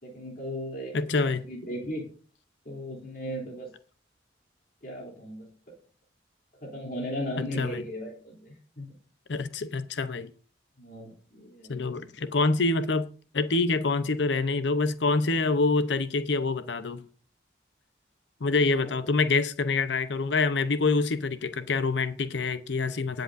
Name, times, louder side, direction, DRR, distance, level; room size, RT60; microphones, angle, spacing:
voice 1, 0.0-2.1 2.6-3.7 4.8-5.5 6.6-8.9 10.8-11.8 18.6-19.0, equal, 50° left, 3.1 m, -37 dB
voice 2, 0.9-1.4 7.4-7.8 9.3-10.3 11.7-13.1 13.3-17.0 18.4-23.2, left 3 dB, 70° left, 0.7 m, -26 dB
19.0 x 7.8 x 2.6 m
head